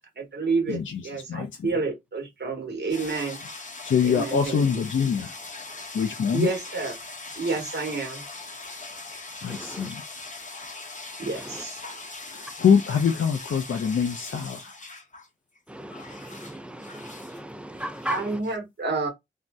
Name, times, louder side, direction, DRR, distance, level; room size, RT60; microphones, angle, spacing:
voice 1, 0.2-3.4 4.0-4.6 6.3-6.9 7.4-8.2 11.2-11.8 18.1-19.1, right 3 dB, 60° right, 1.0 m, -29 dB
voice 2, 0.7-1.7 3.8-5.4 5.9-6.5 9.4-10.0 12.3-14.7, left 7 dB, 75° left, 0.4 m, -24 dB
sound 1, 2.9-15.3 15.5-17.4 17.8-18.6, left 3 dB, 40° left, 0.7 m, -41 dB
voice 3, 9.5-9.9 11.3-11.7 15.7-18.4, equal, 5° right, 0.4 m, -37 dB
2.6 x 2.0 x 3.3 m
wide cardioid pair, 100°, 20 cm